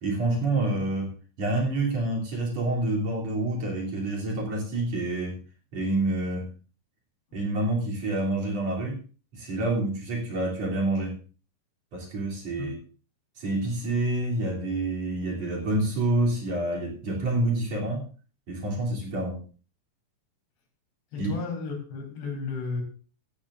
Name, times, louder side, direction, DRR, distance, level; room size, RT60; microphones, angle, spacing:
voice 1, 0.0-1.1 1.4-5.4 5.7-6.5 7.3-9.0 9.3-11.2 11.9-12.8 13.4-18.0 18.5-19.4 21.2-21.4, right 2 dB, 45° right, -2 dB, 4.0 m, -27 dB
voice 2, 0.5-0.8 12.6-12.7 21.1-22.8, left 4 dB, 90° left, 1 dB, 5.9 m, -33 dB
16.5 x 15.5 x 2.6 m, 0.37 s
omnidirectional pair, 4.6 m